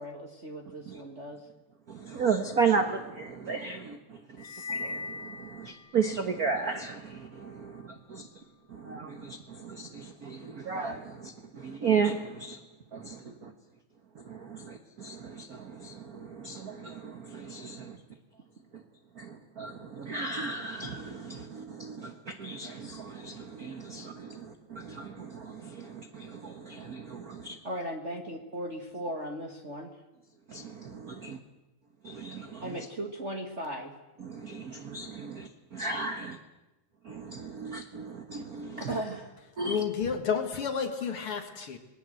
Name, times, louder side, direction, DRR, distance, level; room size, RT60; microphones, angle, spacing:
voice 1, 0.0-1.4 13.3-13.4 27.6-29.9 32.6-33.9 38.8-39.4, right 1 dB, 30° right, 2 dB, 1.6 m, -37 dB
voice 2, 1.9-4.0 4.7-8.2 8.7-12.6 12.9-13.5 14.3-18.0 19.2-27.6 30.5-31.4 32.0-32.6 34.2-36.3 37.1-38.9 39.6-39.8, right 5 dB, 50° right, 7 dB, 1.0 m, -34 dB
sound 1, 4.4-6.2, left 3 dB, 70° left, 3.4 m, -39 dB
voice 3, 39.7-41.8, left 6 dB, 50° left, 6 dB, 2.4 m, -31 dB
27.0 x 20.0 x 7.7 m, 1.1 s
omnidirectional pair, 3.4 m